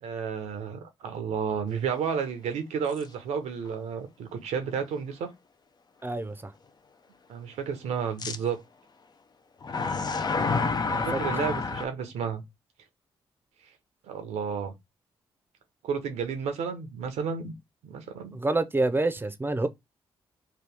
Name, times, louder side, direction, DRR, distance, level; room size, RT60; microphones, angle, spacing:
voice 1, 0.0-5.3 7.3-8.6 10.9-12.4 14.1-14.7 15.8-17.5 17.8-18.4, right 6 dB, 80° right, 0.7 m, -32 dB
sound 1, 2.9-3.0 3.7-3.8 8.2-8.4 9.6-11.9, left 4 dB, 40° left, 0.5 m, -28 dB
voice 2, 6.0-6.5 10.8-11.2 18.3-19.7, right 2 dB, 20° right, 0.6 m, -27 dB
2.9 x 2.3 x 3.4 m
supercardioid pair, 45°, 11 cm